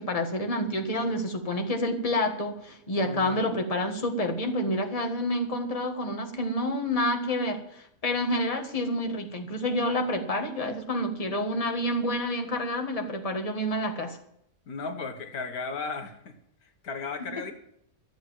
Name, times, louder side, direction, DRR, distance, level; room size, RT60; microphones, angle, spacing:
voice 1, 0.0-14.2, left 1 dB, 25° left, 4 dB, 1.6 m, -28 dB
voice 2, 3.0-3.6 14.7-16.3 16.8-17.5, left 4 dB, 75° left, 6 dB, 1.7 m, -35 dB
13.0 x 8.0 x 9.1 m, 0.73 s
omnidirectional pair, 1.6 m